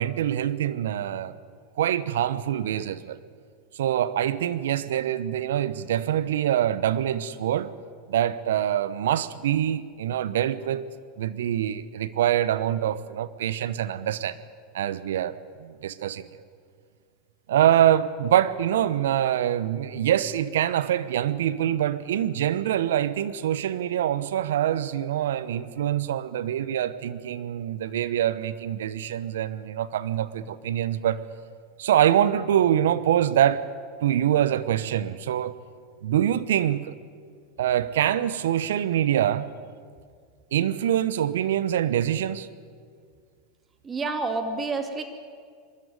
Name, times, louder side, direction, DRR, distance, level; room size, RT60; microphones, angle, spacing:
voice 1, 0.0-1.3 1.8-3.2 3.7-7.7 8.1-10.8 11.2-14.4 14.7-16.3 17.5-31.2 31.8-33.6 34.0-35.6 36.0-37.0 37.6-39.5 40.5-42.5, right 11 dB, 75° right, 0.8 m, -25 dB
voice 2, 43.8-45.0, right 3 dB, 25° right, 2.4 m, -28 dB
22.0 x 13.5 x 9.5 m
hypercardioid pair, 90°, 0 cm